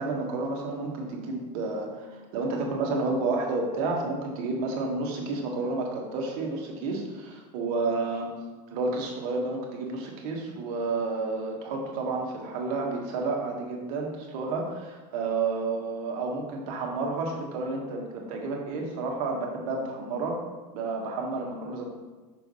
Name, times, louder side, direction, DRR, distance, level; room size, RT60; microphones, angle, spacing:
voice 1, 0.0-8.3 8.7-20.4 20.7-21.9, right 3 dB, 60° right, 0 dB, 1.4 m, -30 dB
5.9 x 3.4 x 5.4 m, 1.3 s
supercardioid pair, 160°, 20 cm